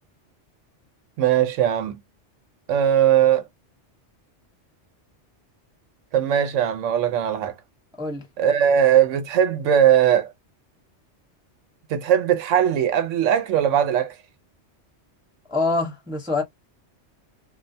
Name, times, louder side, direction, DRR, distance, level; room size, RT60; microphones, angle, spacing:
voice 1, 1.2-2.0 2.7-3.4 6.1-7.5 8.4-10.3 11.9-14.1, right 9 dB, 90° right, 1.0 m, -19 dB
voice 2, 15.5-16.4, left 3 dB, 5° right, 0.6 m, -24 dB
2.4 x 2.1 x 2.6 m
omnidirectional pair, 1.2 m